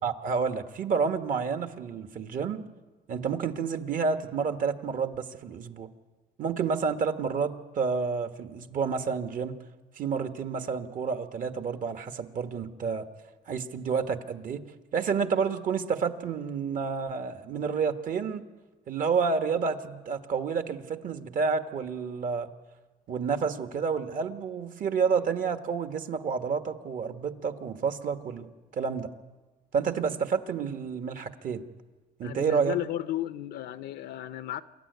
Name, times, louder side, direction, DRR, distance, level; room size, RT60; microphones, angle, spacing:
voice 1, 0.0-2.6 3.1-5.9 6.4-9.6 9.9-13.0 13.5-14.6 14.9-18.4 18.9-22.5 23.1-29.1 29.7-31.6 32.2-32.7, right 5 dB, 55° right, 7 dB, 1.6 m, -29 dB
voice 2, 32.2-34.6, left 13 dB, 75° left, 11 dB, 0.7 m, -34 dB
26.5 x 13.0 x 9.5 m, 1.3 s
cardioid pair, 110°, 17 cm